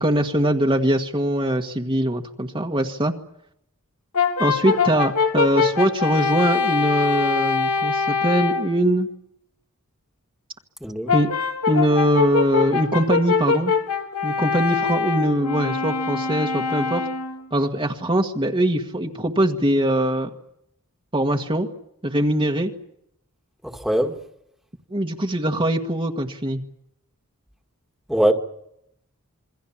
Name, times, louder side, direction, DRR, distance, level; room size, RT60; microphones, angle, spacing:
voice 1, 0.0-3.1 4.4-9.1 11.1-11.3 11.7-13.7 14.2-17.1 17.5-20.3 21.1-21.7 22.0-22.7 24.9-26.6, right 1 dB, 25° right, 1.6 m, -22 dB
Brass instrument, 4.1-8.7 11.1-17.4, left 5 dB, 85° left, 2.6 m, -23 dB
voice 2, 10.8-11.1 23.6-24.2 28.1-28.3, right 1 dB, ahead, 1.9 m, -21 dB
27.5 x 23.5 x 7.3 m
head